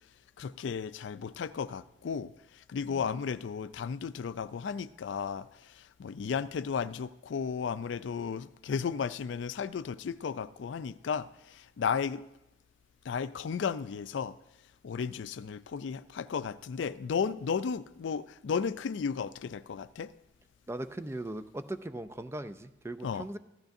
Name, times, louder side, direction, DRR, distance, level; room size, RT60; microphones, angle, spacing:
voice 1, 0.4-12.2 13.0-14.4 14.8-20.1 23.0-23.3, left 6 dB, 70° left, 0.4 m, -34 dB
voice 2, 20.7-23.4, right 1 dB, 15° right, 0.4 m, -39 dB
15.0 x 13.0 x 2.7 m
head